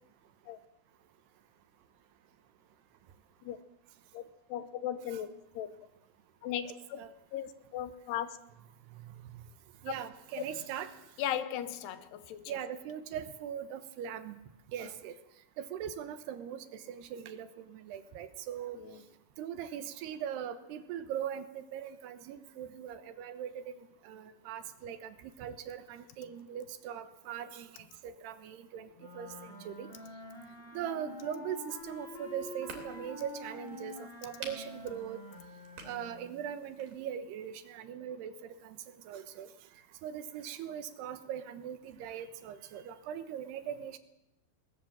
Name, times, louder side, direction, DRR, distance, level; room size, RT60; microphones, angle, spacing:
voice 1, 4.5-5.3 5.5-5.7 6.4-7.0 7.3-8.3 9.9-10.0 11.2-12.6 18.7-19.0, left 10 dB, 80° left, 3.1 m, -37 dB
voice 2, 6.6-7.1 9.8-10.9 12.5-14.4 14.7-15.1 15.6-18.8 19.4-23.7 24.1-25.1 25.4-27.7 28.0-28.9 29.2-29.3 29.7-29.9 30.7-35.2 35.8-38.3 38.6-38.8 39.1-39.5 40.0-44.0, right 9 dB, 75° right, 3.2 m, -40 dB
sound 1, 29.0-36.3, left 2 dB, 35° left, 5.2 m, -47 dB
sound 2, 31.8-37.1, right 4 dB, 60° right, 4.9 m, -52 dB
20.5 x 20.0 x 7.6 m
omnidirectional pair, 4.9 m